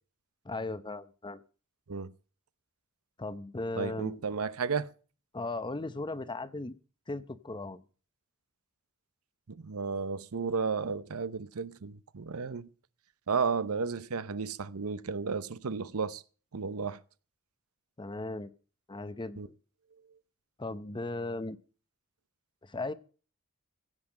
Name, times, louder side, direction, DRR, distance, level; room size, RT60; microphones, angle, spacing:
voice 1, 0.4-1.4 3.2-4.2 5.3-6.7 7.1-7.8 18.0-18.5 18.9-19.5 20.6-21.6 22.6-22.9, left 2 dB, 20° left, 0.7 m, -37 dB
voice 2, 3.8-4.9 9.5-12.7 13.3-16.2 16.5-17.0 19.4-19.5, right 5 dB, 75° right, 0.7 m, -33 dB
16.0 x 5.9 x 8.7 m
head